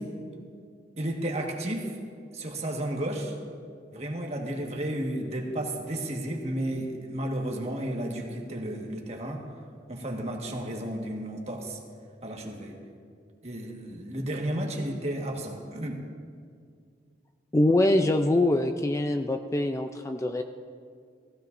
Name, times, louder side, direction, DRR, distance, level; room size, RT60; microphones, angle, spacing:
voice 1, 1.0-1.9 2.3-3.4 3.9-9.4 9.9-11.8 12.2-12.8 13.4-16.0, right 1 dB, 35° right, 0 dB, 1.5 m, -32 dB
voice 2, 17.5-20.4, left 1 dB, 15° left, 6 dB, 0.4 m, -24 dB
18.0 x 15.0 x 2.6 m, 2.2 s
head